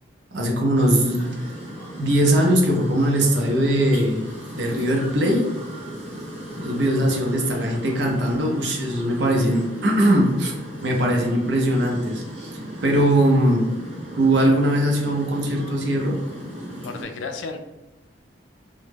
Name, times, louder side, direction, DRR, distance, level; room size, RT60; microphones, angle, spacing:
voice 1, 0.3-1.3 2.0-4.3 4.5-5.5 6.6-10.5 10.8-12.5 12.8-13.7 14.2-16.2, right 1 dB, 60° right, 0 dB, 0.5 m, -20 dB
sound 1, 0.7-17.0, equal, 30° right, 1.0 m, -36 dB
voice 2, 16.8-17.6, left 4 dB, 70° left, 6 dB, 0.3 m, -32 dB
2.1 x 2.1 x 3.2 m, 1.1 s
head